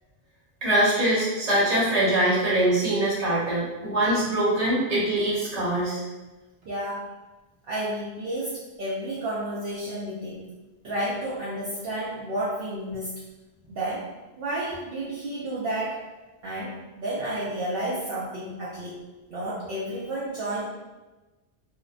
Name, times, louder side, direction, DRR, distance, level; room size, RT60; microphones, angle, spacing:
voice 1, 0.6-6.0, right 1 dB, 35° right, -8 dB, 1.0 m, -23 dB
voice 2, 6.6-7.1 7.7-10.4 10.8-13.1 13.7-14.1 14.4-16.1 16.4-19.0 19.3-20.6, right 1 dB, 65° right, -8 dB, 0.7 m, -31 dB
2.7 x 2.0 x 2.4 m, 1.1 s
omnidirectional pair, 1.1 m